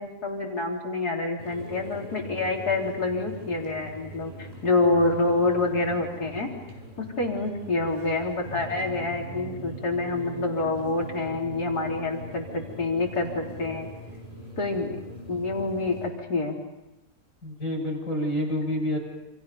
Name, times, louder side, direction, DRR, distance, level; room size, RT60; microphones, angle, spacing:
voice 1, 0.0-6.5 7.0-13.9 14.6-14.9 15.3-16.6, left 3 dB, 70° left, 0 dB, 4.4 m, -27 dB
sound 1, 1.4-16.1, right 1 dB, 20° right, 6.5 m, -41 dB
voice 2, 17.4-19.0, equal, 55° left, -1 dB, 7.0 m, -28 dB
29.5 x 27.0 x 5.4 m, 0.97 s
omnidirectional pair, 1.7 m